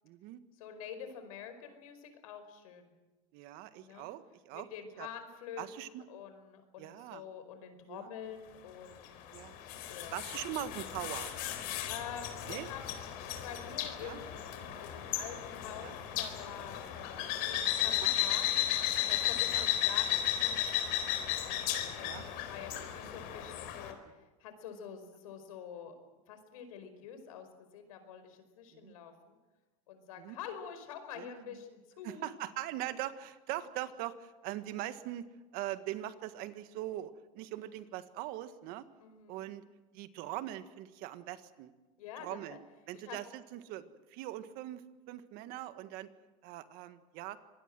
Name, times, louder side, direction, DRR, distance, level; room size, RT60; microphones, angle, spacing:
voice 1, 0.0-0.4 3.3-4.7 5.0-5.1 5.6-6.0 6.8-7.3 7.9-8.1 9.3-9.5 10.1-11.3 12.5-12.7 14.0-14.2 15.8-15.9 18.0-18.1 19.5-19.7 22.0-22.3 22.7-22.8 28.7-28.9 30.2-30.4 31.2-31.4 32.0-35.3 35.5-38.8 39.3-39.6 39.9-41.7 42.2-42.6 42.9-46.1 46.4-47.4, right 14 dB, 60° right, 11 dB, 1.7 m, -41 dB
voice 2, 0.6-2.9 3.8-4.1 4.5-9.1 9.9-10.3 11.9-12.8 13.4-15.9 16.2-21.0 21.4-21.7 22.0-25.9 26.3-29.4 29.9-32.3 39.0-39.5 42.0-42.6 42.9-43.2, left 8 dB, 90° left, 9 dB, 5.0 m, -47 dB
sound 1, 9.0-23.9, left 12 dB, 60° left, 4.1 m, -34 dB
25.5 x 20.0 x 7.7 m, 1.2 s
supercardioid pair, 130°, 18 cm